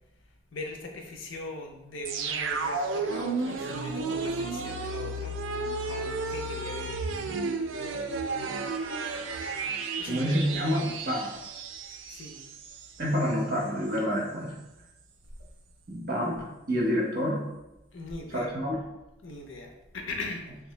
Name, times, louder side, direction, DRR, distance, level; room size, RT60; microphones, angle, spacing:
voice 1, 0.5-5.3 5.9-7.1 10.0-10.9 12.1-12.4 17.9-18.6 19.2-20.7, left 2 dB, 85° left, 3 dB, 0.6 m, -40 dB
sound 1, 2.1-12.9 13.2-13.3, right 3 dB, 85° right, 0.4 m, -33 dB
voice 2, 10.1-11.3 13.0-14.5 15.9-16.4 16.7-17.4 18.3-18.8, equal, 50° right, -2 dB, 1.0 m, -28 dB
3.5 x 2.7 x 3.2 m, 0.98 s
head